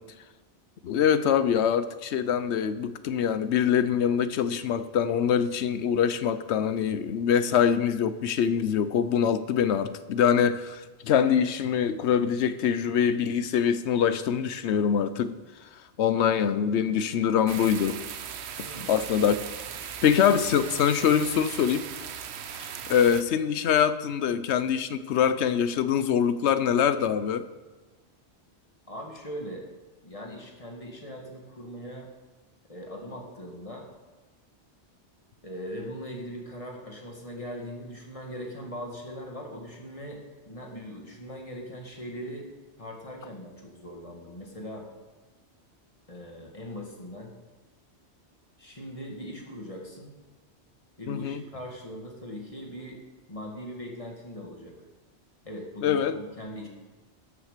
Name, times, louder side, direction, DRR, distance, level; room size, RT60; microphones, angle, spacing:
voice 1, 0.8-15.4 16.0-18.0 18.6-19.4 20.0-21.8 22.6-27.5 51.1-51.4 55.8-56.2, left 8 dB, 75° left, 13 dB, 1.0 m, -24 dB
sound 1, 17.5-23.2, right 8 dB, 70° right, 1.0 m, -38 dB
voice 2, 18.6-18.9 28.9-29.6 30.0-32.1 32.7-33.9 35.4-42.5 42.8-44.9 46.1-47.3 48.6-50.2 51.0-53.0 53.3-54.7 55.4-56.7, equal, 30° left, 0 dB, 2.0 m, -40 dB
12.5 x 7.5 x 6.6 m, 1.2 s
omnidirectional pair, 1.2 m